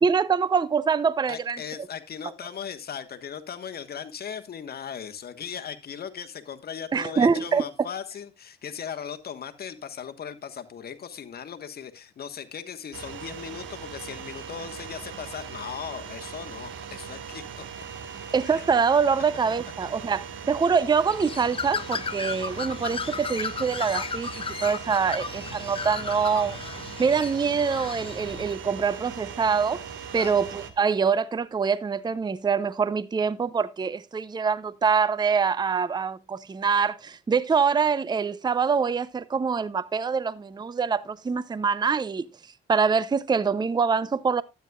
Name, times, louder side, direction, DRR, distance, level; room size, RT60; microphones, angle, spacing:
voice 1, 0.0-1.6 6.9-7.6 18.3-24.3 24.6-26.6 27.0-29.8 30.1-42.3 42.7-44.4, right 5 dB, 20° right, 0.5 m, -24 dB
voice 2, 1.3-17.6 18.4-18.6 30.1-30.4, left 8 dB, 50° left, 1.3 m, -38 dB
sound 1, 12.9-30.7, right 7 dB, 75° right, 1.5 m, -40 dB
Bird, 21.1-28.5, left 5 dB, 25° left, 0.6 m, -35 dB
12.5 x 9.4 x 2.3 m
cardioid pair, 90°, 20 cm